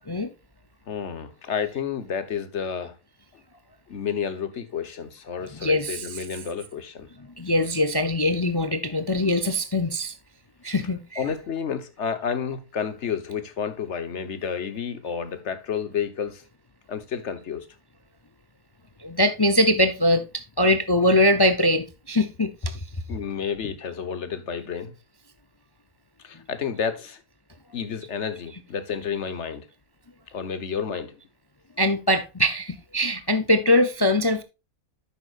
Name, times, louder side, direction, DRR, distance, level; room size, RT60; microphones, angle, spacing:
voice 1, 0.9-2.9 3.9-7.1 11.2-16.4 16.9-17.7 23.1-24.9 26.2-27.2 27.7-29.7 30.3-31.2, left 7 dB, 55° left, 1.5 m, -30 dB
voice 2, 5.5-6.2 7.4-10.1 10.6-11.2 19.0-22.8 31.8-34.4, left 1 dB, 25° left, 0.5 m, -22 dB
10.5 x 8.1 x 2.5 m
omnidirectional pair, 1.5 m